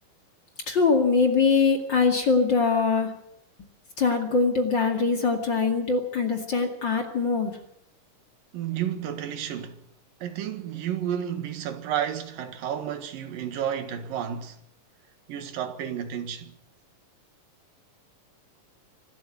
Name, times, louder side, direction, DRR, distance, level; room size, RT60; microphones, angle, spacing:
voice 1, 0.7-3.1 4.0-7.5, left 4 dB, 35° left, 2.6 m, -22 dB
voice 2, 8.5-9.8 10.2-14.6 15.3-16.6, right 9 dB, 85° right, 3.3 m, -31 dB
25.0 x 13.0 x 8.2 m
omnidirectional pair, 3.9 m